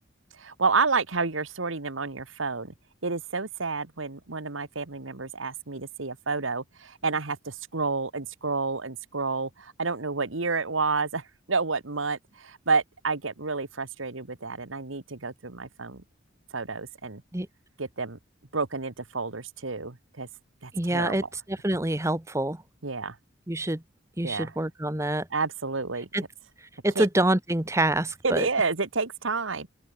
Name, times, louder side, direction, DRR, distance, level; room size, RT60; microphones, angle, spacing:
voice 1, 0.4-2.7 3.0-16.0 16.5-17.2 17.8-18.2 18.5-20.3 20.6-21.3 22.8-23.2 24.2-24.5 25.3-26.1 26.9-27.1 28.2-29.7, right 4 dB, 80° right, 1.6 m, -30 dB
voice 2, 20.7-22.6 23.5-23.8 24.2-25.3 26.1-26.2 26.8-28.5, right 1 dB, 15° right, 1.0 m, -26 dB
open air
head